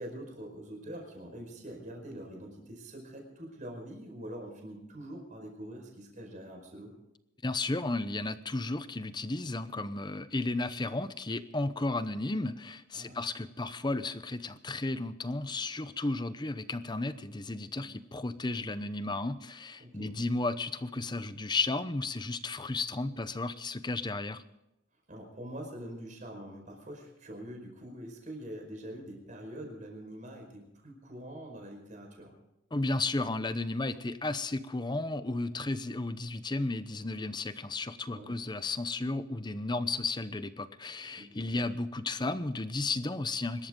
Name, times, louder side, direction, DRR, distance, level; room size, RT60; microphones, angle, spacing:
voice 1, 0.0-6.9 12.9-13.2 17.7-17.8 19.8-20.1 25.1-32.3 38.1-38.3 41.1-41.4, right 1 dB, 40° right, 2 dB, 5.0 m, -44 dB
voice 2, 7.4-24.4 32.7-43.7, left 2 dB, 20° left, 13 dB, 0.7 m, -33 dB
25.0 x 13.0 x 3.8 m, 0.89 s
head